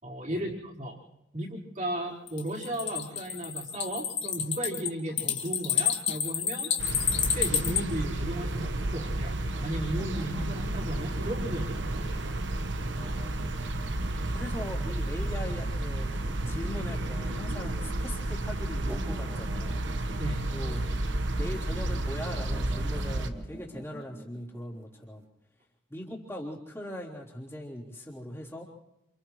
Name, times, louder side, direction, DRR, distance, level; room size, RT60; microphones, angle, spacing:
voice 1, 0.0-1.0 1.3-6.7 7.2-12.1 20.2-20.5, right 1 dB, 45° right, -4 dB, 4.3 m, -35 dB
sound 1, 2.3-7.8, left 8 dB, 80° left, 2.0 m, -29 dB
sound 2, 6.8-23.3, right 1 dB, 90° right, 1.2 m, -32 dB
sound 3, 9.4-25.2, right 1 dB, 20° right, 3.0 m, -49 dB
voice 2, 14.3-16.1 16.5-19.8 20.4-20.8 21.4-25.2 25.9-28.7, equal, 15° left, -5 dB, 3.6 m, -40 dB
28.5 x 28.0 x 3.2 m, 0.90 s
head